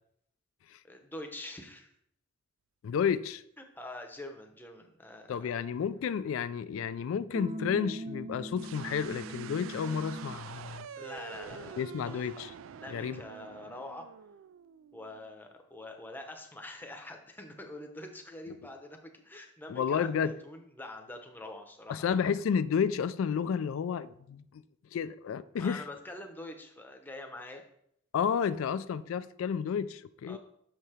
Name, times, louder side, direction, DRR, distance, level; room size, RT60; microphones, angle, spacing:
voice 1, 0.8-1.9 3.6-5.5 11.0-14.1 14.9-22.2 25.5-27.6 30.3-30.4, left 1 dB, 10° left, 0.7 m, -45 dB
voice 2, 2.8-3.4 5.3-10.9 11.8-12.5 12.9-13.2 19.7-20.3 21.9-24.6 24.9-25.8 28.1-30.4, left 7 dB, 85° left, 0.3 m, -31 dB
sound 1, 7.3-10.5, equal, 25° right, 0.5 m, -40 dB
sound 2, 8.5-15.3, right 8 dB, 80° right, 0.3 m, -47 dB
6.6 x 4.6 x 4.9 m
head